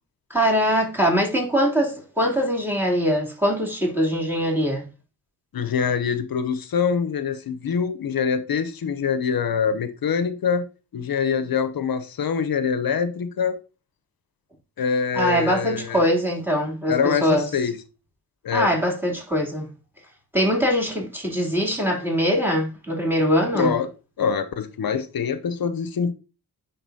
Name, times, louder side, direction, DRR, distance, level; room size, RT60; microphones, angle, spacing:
voice 1, 0.3-4.8 15.1-17.5 18.5-19.7 20.3-23.7, equal, 5° right, 3.0 m, -22 dB
voice 2, 5.5-10.7 10.9-13.6 14.8-16.0 16.9-17.8 18.4-18.7 23.5-23.9 24.2-26.1, left 6 dB, 55° left, 0.8 m, -24 dB
9.9 x 4.0 x 2.7 m
cardioid pair, 50°, 42 cm